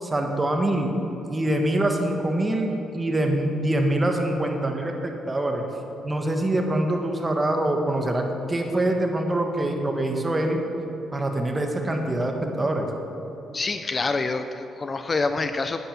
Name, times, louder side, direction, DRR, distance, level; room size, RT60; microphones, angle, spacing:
voice 1, 0.0-1.0 1.3-5.6 6.0-10.6 11.1-12.9, right 1 dB, 20° right, 3 dB, 1.5 m, -24 dB
voice 2, 13.5-15.8, left 3 dB, 35° left, 9 dB, 0.5 m, -26 dB
9.8 x 9.4 x 5.8 m, 3.0 s
cardioid pair, 90°, 0 cm